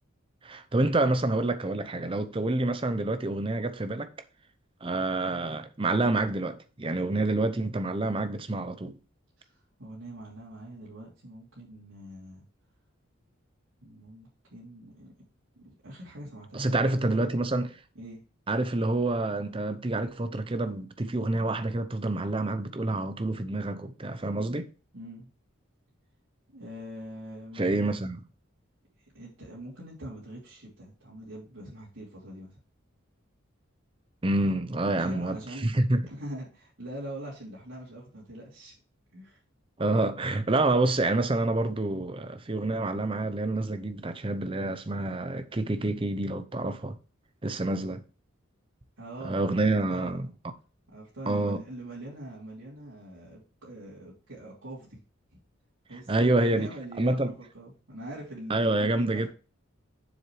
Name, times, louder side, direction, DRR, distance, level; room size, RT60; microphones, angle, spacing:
voice 1, 0.4-4.1 4.8-9.0 16.5-17.7 18.5-24.7 27.6-28.3 34.2-36.0 39.8-47.0 47.4-48.0 49.2-50.3 51.3-51.6 56.1-56.7 57.0-57.3 58.5-59.3, right 2 dB, 25° right, 0.7 m, -27 dB
voice 2, 9.4-12.4 13.8-15.1 15.5-17.4 17.9-18.2 24.9-25.3 26.5-27.9 29.1-32.6 34.8-35.7 36.1-38.7 39.1-39.4 49.0-50.3 50.9-55.0 55.9-59.3, right 1 dB, 85° right, 3.0 m, -43 dB
7.3 x 6.7 x 3.2 m
head